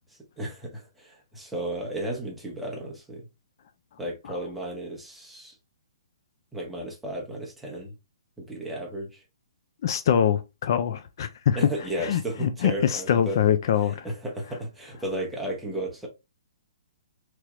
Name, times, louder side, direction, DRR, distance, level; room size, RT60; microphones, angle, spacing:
voice 1, 0.4-3.3 4.0-5.5 6.5-7.9 8.4-9.2 11.5-13.4 13.9-16.1, right 1 dB, 5° right, 0.8 m, -34 dB
voice 2, 9.8-11.6 12.0-14.1, left 9 dB, 50° left, 0.4 m, -24 dB
3.2 x 3.0 x 2.4 m
hypercardioid pair, 155°, 3 cm